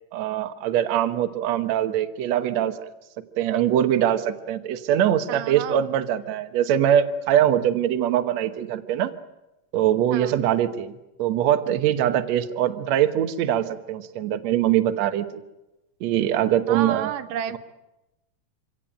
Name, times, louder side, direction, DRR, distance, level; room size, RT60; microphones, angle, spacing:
voice 1, 0.1-2.9 3.4-9.1 9.7-10.9 11.2-15.4 16.0-17.1, right 11 dB, 65° right, 9 dB, 2.2 m, -22 dB
voice 2, 5.3-5.8 10.1-10.4 16.7-17.6, right 10 dB, 85° right, 10 dB, 2.6 m, -30 dB
25.5 x 17.5 x 9.0 m, 0.96 s
omnidirectional pair, 3.7 m